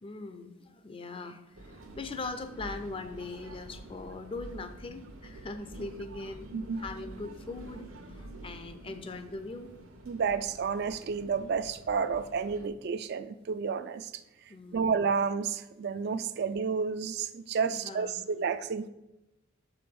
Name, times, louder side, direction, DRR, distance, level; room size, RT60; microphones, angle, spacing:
voice 1, 0.0-6.5 6.8-9.7 14.5-14.9 17.7-18.3, left 3 dB, 25° left, 10 dB, 0.5 m, -41 dB
sound 1, 1.5-12.7, right 1 dB, 85° right, 1.1 m, -48 dB
voice 2, 10.1-14.1 14.7-18.9, right 5 dB, 50° right, 12 dB, 0.3 m, -31 dB
6.8 x 4.8 x 5.3 m, 0.94 s
head